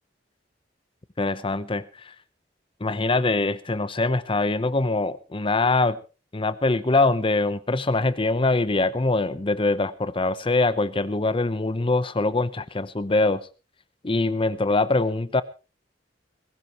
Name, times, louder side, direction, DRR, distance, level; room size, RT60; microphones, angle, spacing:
voice 1, 1.2-2.1 2.8-6.0 6.3-13.4 14.0-15.4, left 2 dB, 30° left, 0.8 m, -23 dB
20.0 x 16.5 x 3.0 m
head